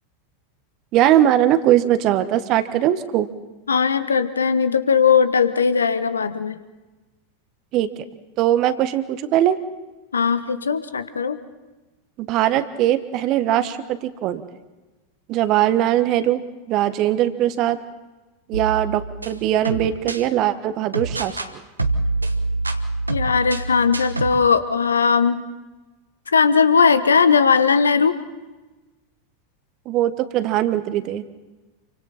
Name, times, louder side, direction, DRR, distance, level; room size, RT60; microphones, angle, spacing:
voice 1, 0.9-3.3 7.7-7.9 8.4-9.6 12.2-14.4 15.3-16.4 16.7-17.8 18.5-21.6 29.8-31.2, right 12 dB, 40° right, 12 dB, 1.4 m, -20 dB
voice 2, 3.7-6.6 10.1-11.4 23.1-25.4 26.3-28.2, left 6 dB, 75° left, 12 dB, 1.1 m, -18 dB
sound 1, 18.5-20.2 20.9-21.5 21.8-24.4, right 2 dB, 85° right, 1.2 m, -26 dB
28.5 x 25.0 x 4.3 m, 1.2 s
figure-of-eight pair, 85°, 0 cm